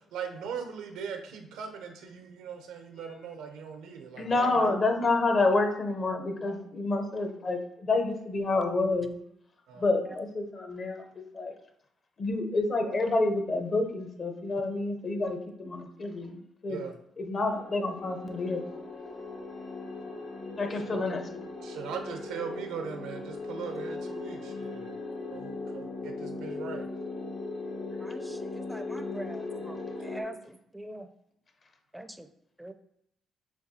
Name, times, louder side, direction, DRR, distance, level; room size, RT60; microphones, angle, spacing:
voice 1, 0.1-4.7 9.7-9.9 12.8-13.0 16.7-16.9 20.8-21.2 21.6-24.9 25.3-26.9, right 7 dB, 90° right, 5 dB, 0.6 m, -39 dB
voice 2, 4.2-9.1 9.8-11.0 11.3-11.5 12.2-16.8 17.2-18.7 20.5-21.2, left 3 dB, 45° left, 5 dB, 0.7 m, -28 dB
sound 1, 17.5-30.2, left 3 dB, 75° left, 1.6 m, -38 dB
voice 3, 28.0-31.1 31.9-32.3 32.6-32.7, right 1 dB, 5° right, 8 dB, 0.4 m, -43 dB
6.8 x 2.3 x 2.7 m, 0.76 s
cardioid pair, 90°, 0 cm